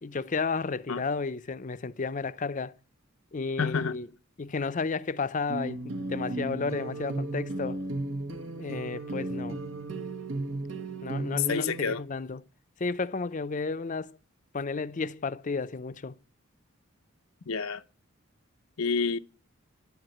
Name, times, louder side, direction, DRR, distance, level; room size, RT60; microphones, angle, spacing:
voice 1, 0.0-2.8 3.3-4.1 4.4-7.8 8.6-9.6 9.9-10.0 11.0-12.4 12.8-14.2 14.5-16.2, left 4 dB, 40° left, 0.6 m, -32 dB
voice 2, 3.6-4.0 11.5-12.0 17.5-17.8 18.8-19.2, left 5 dB, 80° left, 0.7 m, -28 dB
sound 1, 5.5-11.9, right 2 dB, 65° right, 1.1 m, -35 dB
10.5 x 7.8 x 9.1 m
head